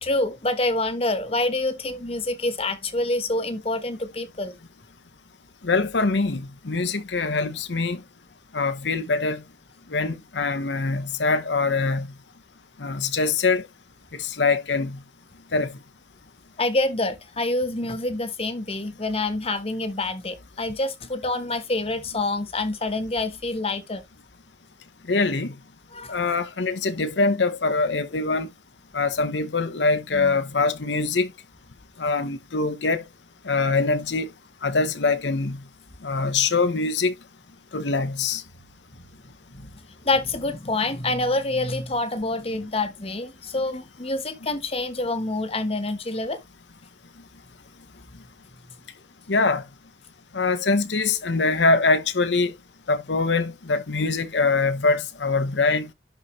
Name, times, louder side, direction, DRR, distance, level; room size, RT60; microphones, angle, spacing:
voice 1, 0.0-4.5 16.6-24.0 25.9-26.2 30.1-30.4 39.5-46.4, left 2 dB, 35° left, 1.1 m, -27 dB
voice 2, 5.6-8.0 8.5-9.4 9.9-12.1 12.8-13.6 14.1-15.0 15.5-15.7 25.1-25.5 26.1-28.5 28.9-31.3 32.0-33.0 33.4-34.3 34.6-35.6 36.0-37.1 37.7-38.4 49.3-49.6 50.3-52.5 52.9-55.9, left 3 dB, 90° left, 0.9 m, -23 dB
11.5 x 4.1 x 3.1 m
head